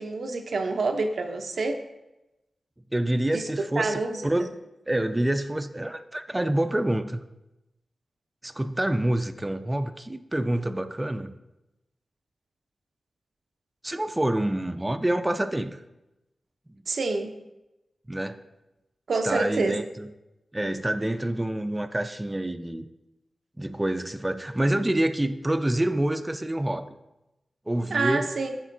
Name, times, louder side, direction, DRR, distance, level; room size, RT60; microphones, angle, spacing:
voice 1, 0.0-1.8 3.3-3.4 3.8-4.2 16.9-17.3 19.1-19.8 27.9-28.5, right 3 dB, 75° right, 5 dB, 0.5 m, -27 dB
voice 2, 2.9-4.5 4.9-7.2 8.4-11.3 13.8-15.8 18.1-18.4 19.2-20.1 20.5-22.9 23.6-26.9 27.7-28.3, right 1 dB, 20° right, 9 dB, 0.4 m, -27 dB
10.5 x 3.6 x 2.5 m, 0.95 s
cardioid pair, 40°, 0 cm